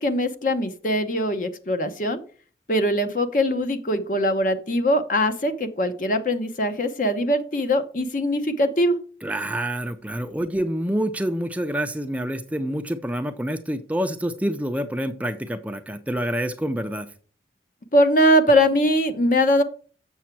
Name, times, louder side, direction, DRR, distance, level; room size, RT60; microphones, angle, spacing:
voice 1, 0.0-2.2 2.7-9.0 17.9-19.6, equal, 45° left, 8 dB, 0.8 m, -21 dB
voice 2, 9.2-17.1, equal, 10° right, 7 dB, 0.4 m, -27 dB
7.3 x 6.8 x 4.5 m, 0.41 s
head